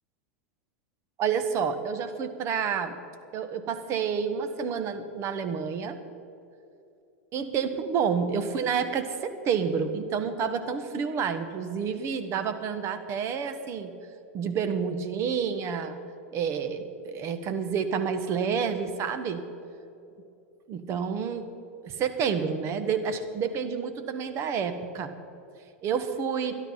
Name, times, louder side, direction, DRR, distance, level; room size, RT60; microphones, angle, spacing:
voice 1, 1.2-3.0 3.3-6.0 7.3-13.9 14.3-16.0 16.3-19.4 20.7-21.5 21.8-25.1 25.8-26.6, right 6 dB, 40° right, 9 dB, 1.2 m, -29 dB
12.5 x 11.5 x 5.6 m, 2.7 s
hypercardioid pair, 95°, 7 cm